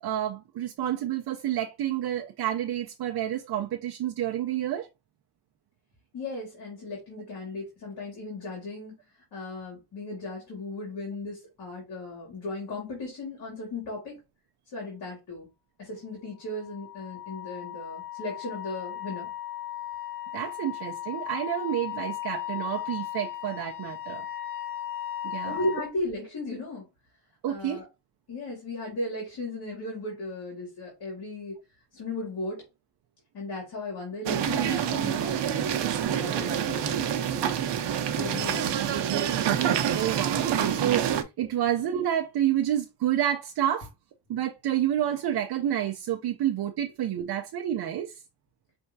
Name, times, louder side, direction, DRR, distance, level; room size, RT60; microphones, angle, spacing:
voice 1, 0.0-4.9 20.3-24.3 25.2-25.6 27.4-27.8 39.9-43.9 44.3-48.2, right 11 dB, 65° right, 0.6 m, -29 dB
voice 2, 6.1-9.0 9.3-14.2 14.7-15.5 15.8-19.3 25.5-26.9 27.5-27.9 28.3-31.6 31.9-32.7 33.3-35.9 36.2-37.8 38.2-38.9, left 2 dB, 60° left, 2.4 m, -36 dB
Wind instrument woodwind instrument, 16.5-25.9, left 12 dB, 30° left, 0.6 m, -36 dB
sound 1, 34.3-41.2, right 9 dB, 90° right, 0.8 m, -27 dB
5.5 x 3.4 x 2.6 m
wide cardioid pair, 170°, 41 cm